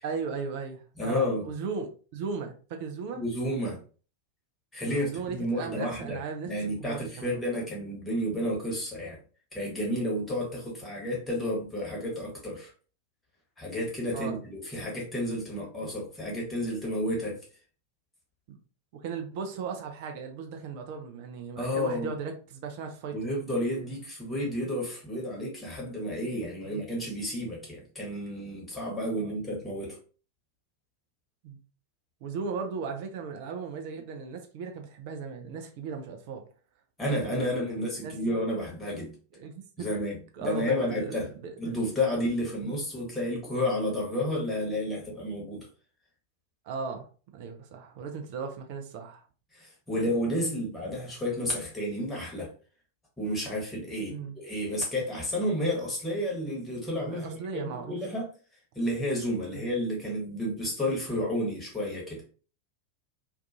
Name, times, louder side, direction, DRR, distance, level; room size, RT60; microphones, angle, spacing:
voice 1, 0.0-3.2 4.9-7.3 10.6-10.8 14.1-14.4 18.5-18.6 18.9-23.1 26.6-26.8 29.2-29.3 31.4-31.6 32.2-36.4 37.2-38.1 39.4-39.9 40.3-41.6 42.6-42.7 46.7-47.1 47.3-49.2 49.9-50.1 54.1-54.3 57.1-58.0 59.5-59.7, right 5 dB, 50° right, 5 dB, 0.4 m, -37 dB
voice 2, 1.0-1.4 3.1-3.8 4.7-9.2 9.5-12.7 13.6-17.4 21.6-22.1 23.1-30.0 37.0-39.1 39.8-41.3 41.6-45.7 49.5-52.5 53.2-57.4 57.9-58.3 58.7-62.2, left 1 dB, 10° left, -3 dB, 1.1 m, -31 dB
2.4 x 2.3 x 2.6 m, 0.38 s
figure-of-eight pair, 90°, 0 cm